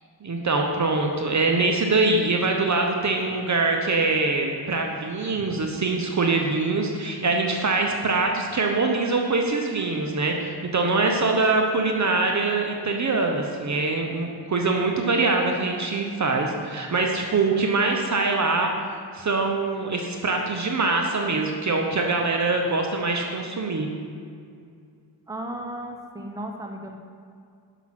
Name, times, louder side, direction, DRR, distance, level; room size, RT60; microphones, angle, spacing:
voice 1, 0.2-18.7 19.1-23.9, right 3 dB, 40° right, 2 dB, 0.9 m, -23 dB
voice 2, 25.3-27.0, right 1 dB, 10° right, 2 dB, 0.9 m, -35 dB
5.9 x 5.9 x 5.9 m, 2.3 s
cardioid pair, 80°, 45 cm